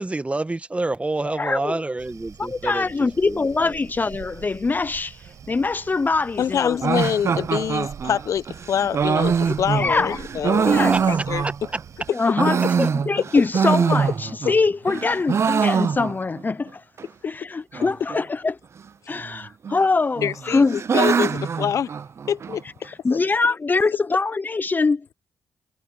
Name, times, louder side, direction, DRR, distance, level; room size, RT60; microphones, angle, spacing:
voice 1, 0.0-3.7 10.9-11.0 11.4-11.5 12.6-12.9, right 2 dB, 20° right, 1.7 m, -28 dB
voice 2, 1.2-1.8 2.4-6.8 9.4-10.2 10.6-11.0 12.1-16.8 17.2-18.6 19.1-20.8 22.8-25.1, left 3 dB, 30° left, 0.7 m, -23 dB
sound 1, 2.0-12.1, right 8 dB, 70° right, 6.3 m, -45 dB
voice 3, 6.4-11.4 14.4-14.5 20.2-21.9 22.3-22.6 23.1-23.2, left 8 dB, 65° left, 0.8 m, -25 dB
sound 2, 6.8-11.8 12.2-14.6 14.9-16.4 16.7-16.8 17.0-17.1 17.7-18.2 19.2-19.8 20.2-22.6, right 6 dB, 50° right, 0.8 m, -23 dB
supercardioid pair, 55°, 6 cm